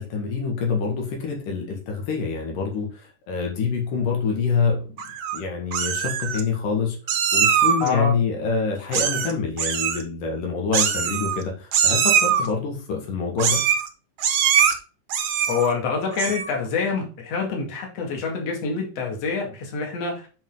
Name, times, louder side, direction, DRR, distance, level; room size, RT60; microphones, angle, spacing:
voice 1, 0.0-4.9 5.3-7.0 7.3-13.6, left 5 dB, 85° left, 0 dB, 3.5 m, -26 dB
Meow, 5.0-5.4 5.7-6.4 7.1-7.9 8.9-9.3 9.6-10.0 10.7-11.4 11.7-12.5 13.4-13.9 14.2-14.7 15.1-15.7 16.1-16.5, right 8 dB, 65° right, 1.3 m, -22 dB
voice 2, 7.8-8.1 15.5-20.3, left 5 dB, 55° left, 0 dB, 3.2 m, -26 dB
8.6 x 5.4 x 3.8 m, 0.35 s
omnidirectional pair, 3.7 m